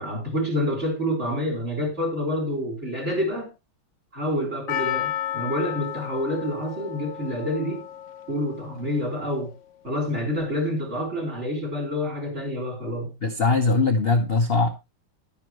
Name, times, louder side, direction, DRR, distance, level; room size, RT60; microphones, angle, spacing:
voice 1, 0.0-3.5 4.1-7.8 8.3-9.5 9.8-13.1, equal, 35° right, 4.1 m, -28 dB
Percussion, 4.7-9.0 9.3-9.4, left 11 dB, 80° left, 0.6 m, -33 dB
voice 2, 13.2-14.7, left 3 dB, 40° left, 0.9 m, -21 dB
11.5 x 9.7 x 3.1 m
omnidirectional pair, 2.2 m